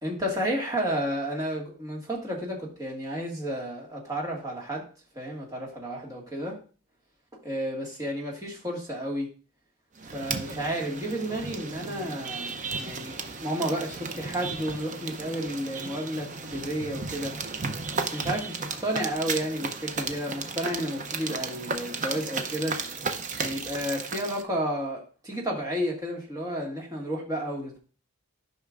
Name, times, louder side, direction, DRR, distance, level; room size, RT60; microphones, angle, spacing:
voice 1, 0.0-4.8 5.2-6.6 7.4-9.3 10.1-17.4 18.0-22.8 23.4-27.8, equal, 15° right, -3 dB, 1.8 m, -32 dB
sound 1, 10.0-24.4, right 4 dB, 35° right, 0.6 m, -34 dB
11.5 x 5.5 x 2.5 m, 0.38 s
head